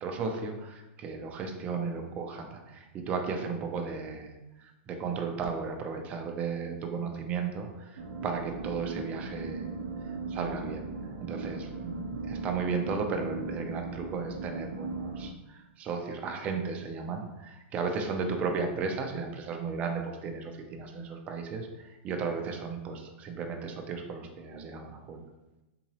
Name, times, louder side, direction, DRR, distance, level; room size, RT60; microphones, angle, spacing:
voice 1, 0.0-4.3 4.6-9.7 10.1-10.9 11.2-25.2, right 5 dB, 20° right, 3 dB, 0.4 m, -35 dB
sound 1, 8.0-15.3, right 3 dB, 65° right, 0.5 m, -38 dB
3.7 x 2.9 x 2.8 m, 1.0 s
supercardioid pair, 160°, 7 cm